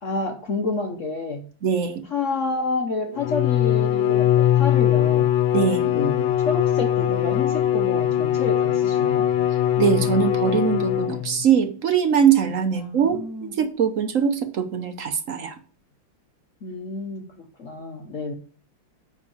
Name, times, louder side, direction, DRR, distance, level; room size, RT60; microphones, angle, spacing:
voice 1, 0.0-1.4 2.1-5.4 5.9-9.2 12.7-13.5 16.6-18.3, left 3 dB, 50° left, 1.0 m, -29 dB
voice 2, 1.6-2.0 5.5-5.9 9.8-15.5, right 7 dB, 55° right, 0.9 m, -22 dB
Bowed string instrument, 3.1-11.4, left 11 dB, 80° left, 1.4 m, -21 dB
9.5 x 3.6 x 6.9 m
omnidirectional pair, 2.1 m